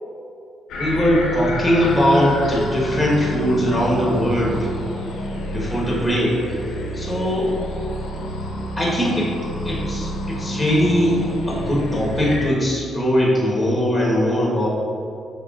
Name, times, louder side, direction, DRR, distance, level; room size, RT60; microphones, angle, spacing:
sound 1, 0.7-12.5, equal, 80° left, 0.7 m, -29 dB
voice 1, 0.7-4.7 5.5-6.4 6.9-7.5 8.8-9.3 9.6-11.2 11.5-14.7, equal, 5° left, -5 dB, 1.2 m, -20 dB
5.7 x 3.4 x 2.4 m, 2.6 s
cardioid pair, 90°, 0 cm